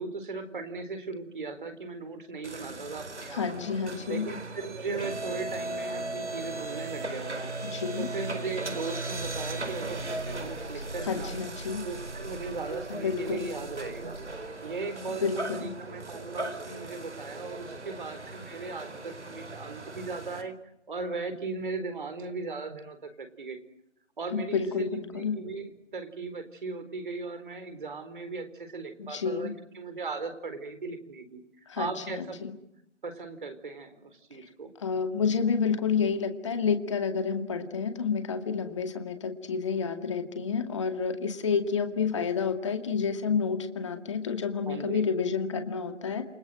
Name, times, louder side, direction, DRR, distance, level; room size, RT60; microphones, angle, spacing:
voice 1, 0.0-3.5 4.1-7.5 7.9-11.4 11.8-14.2 14.6-20.5 20.9-23.6 24.2-32.4 33.0-34.7 44.7-45.1, right 4 dB, 45° right, 9 dB, 4.3 m, -38 dB
sound 1, 2.4-20.4, right 2 dB, 70° right, 4.5 m, -37 dB
voice 2, 3.3-4.3 7.7-8.1 11.1-11.8 12.9-13.5 15.2-15.7 24.3-25.4 29.0-29.5 31.7-32.5 34.8-46.2, left 6 dB, 25° left, 6 dB, 2.2 m, -29 dB
29.5 x 24.5 x 7.8 m, 0.82 s
figure-of-eight pair, 160°, 35 cm